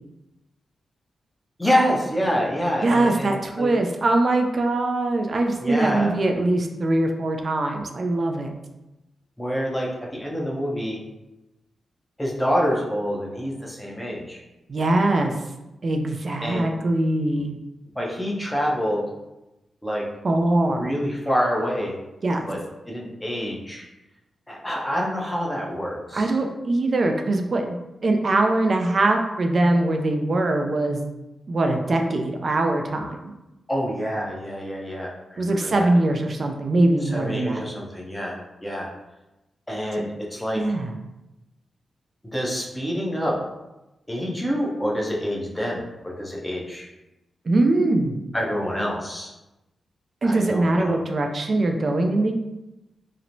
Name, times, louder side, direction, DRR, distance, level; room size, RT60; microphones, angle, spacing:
voice 1, 1.6-3.7 5.6-6.1 9.4-11.0 12.2-14.4 16.4-16.7 17.3-17.4 18.0-19.0 19.8-20.1 20.7-22.0 22.5-23.8 24.5-26.3 33.7-35.9 37.1-38.9 39.7-40.6 42.2-43.4 44.1-46.9 48.3-49.3 50.2-51.0, equal, 10° left, -2 dB, 0.7 m, -27 dB
voice 2, 2.8-8.5 14.7-15.3 15.8-17.6 20.2-20.9 22.2-22.5 26.1-27.8 28.0-31.0 31.5-33.2 35.4-37.6 39.9-40.0 40.5-40.9 47.5-48.2 50.2-52.3, right 2 dB, 50° right, 4 dB, 0.3 m, -22 dB
2.9 x 2.0 x 2.6 m, 0.98 s
cardioid pair, 65°, 0 cm